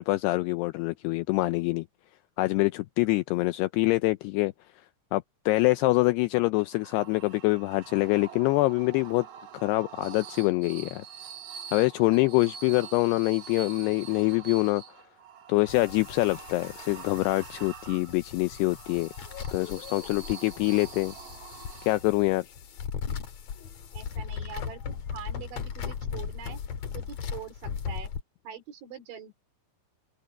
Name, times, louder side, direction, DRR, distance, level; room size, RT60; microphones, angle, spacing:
voice 1, 0.0-1.9 2.4-4.9 5.1-9.3 9.5-11.0 11.7-14.8 15.5-19.1 19.5-21.1 21.8-22.5, left 21 dB, 85° left, 2.4 m, -25 dB
sound 1, 6.6-22.3, right 8 dB, 70° right, 1.8 m, -45 dB
sound 2, 15.7-28.2, left 7 dB, 50° left, 2.3 m, -38 dB
voice 2, 23.9-26.6 26.9-28.1 28.4-29.3, right 8 dB, 85° right, 6.5 m, -43 dB
open air
omnidirectional pair, 5.2 m